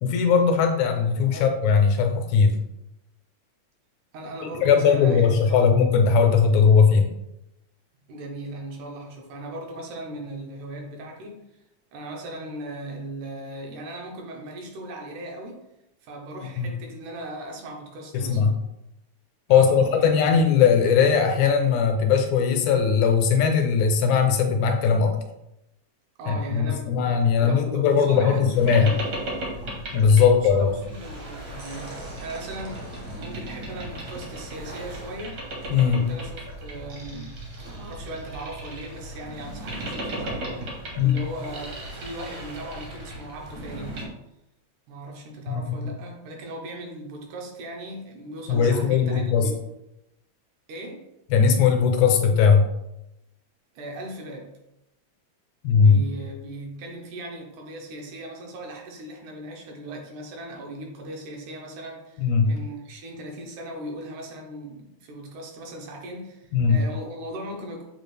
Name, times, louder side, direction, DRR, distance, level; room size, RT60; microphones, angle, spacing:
voice 1, 0.0-2.6 4.6-7.1 16.6-16.7 18.1-18.5 19.5-25.2 26.3-28.9 29.6-30.7 35.7-36.0 41.0-41.2 45.5-45.8 48.5-49.5 51.3-52.7 55.6-56.0 62.2-62.5 66.5-66.8, left 6 dB, 80° left, 5 dB, 1.9 m, -19 dB
voice 2, 4.1-5.6 8.1-11.6 11.9-15.6 16.0-18.5 19.5-20.4 26.2-28.9 30.2-35.4 35.9-37.4 37.7-44.1 44.9-49.6 50.7-51.1 53.8-54.5 55.7-67.8, right 1 dB, 85° right, 1 dB, 2.3 m, -38 dB
Boat Water vehicle, 28.5-44.1, right 1 dB, 60° right, 1.0 m, -36 dB
6.9 x 2.3 x 3.2 m, 0.87 s
omnidirectional pair, 3.4 m